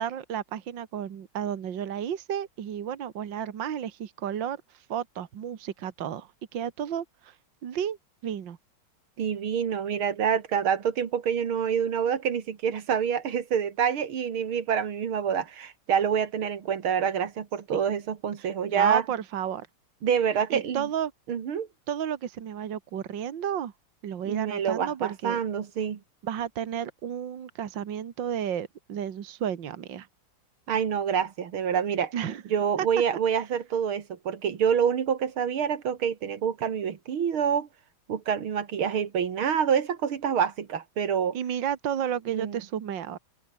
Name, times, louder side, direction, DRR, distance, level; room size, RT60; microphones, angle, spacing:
voice 1, 0.0-7.4 7.6-8.0 8.2-8.6 17.7-17.8 18.4-19.7 20.5-21.1 21.9-23.7 24.0-25.4 26.2-30.1 32.1-32.4 32.8-32.9 41.3-43.2, right 9 dB, 65° right, 2.1 m, -32 dB
voice 2, 9.2-19.0 20.0-20.9 21.3-21.7 24.3-26.0 30.7-32.1 32.5-37.7 38.1-41.4 42.3-42.6, right 8 dB, 85° right, 2.7 m, -27 dB
omnidirectional pair, 2.2 m